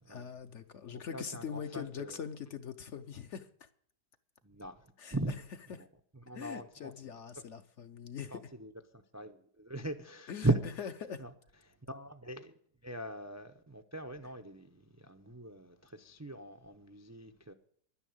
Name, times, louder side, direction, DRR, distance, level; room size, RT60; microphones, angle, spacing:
voice 1, 0.1-3.7 5.0-5.2 6.3-8.4 10.3-11.2, left 7 dB, 60° left, 0.9 m, -42 dB
voice 2, 0.9-2.2 4.4-5.4 5.8-5.9 6.2-6.9 7.4-7.5 8.3-10.6 11.2-11.3 11.7-17.5, right 2 dB, 25° right, 0.3 m, -39 dB
11.5 x 9.9 x 7.8 m
omnidirectional pair, 1.7 m